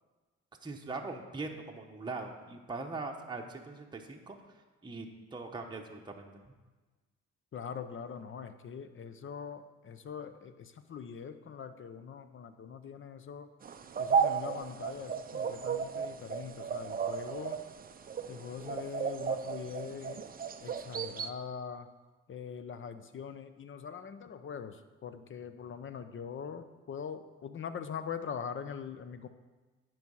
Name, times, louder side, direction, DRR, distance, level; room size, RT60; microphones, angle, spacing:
voice 1, 0.6-4.5 4.8-6.4, right 3 dB, 15° right, 1 dB, 0.9 m, -41 dB
voice 2, 7.5-13.5 14.0-17.6 18.3-20.2 20.6-21.9 22.3-29.3, left 7 dB, 40° left, 11 dB, 0.7 m, -42 dB
sound 1, 13.6-21.3, right 6 dB, 30° right, 0.5 m, -34 dB
9.3 x 4.7 x 6.3 m, 1.3 s
cardioid pair, 90°, 30 cm